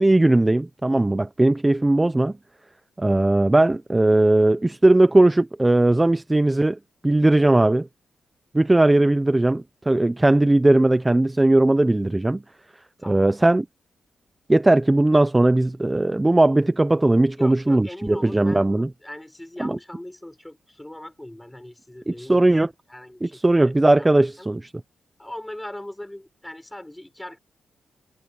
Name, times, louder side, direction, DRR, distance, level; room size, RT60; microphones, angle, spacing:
voice 1, 0.0-2.3 3.0-6.8 7.0-7.9 8.5-12.4 13.1-13.6 14.5-18.9 19.6-19.8 22.1-22.7 23.2-24.7, right 2 dB, 15° right, 0.8 m, -18 dB
voice 2, 17.4-18.7 19.0-22.5 22.9-24.5 25.2-27.4, left 1 dB, 10° left, 7.1 m, -39 dB
cardioid pair, 85°, 0 cm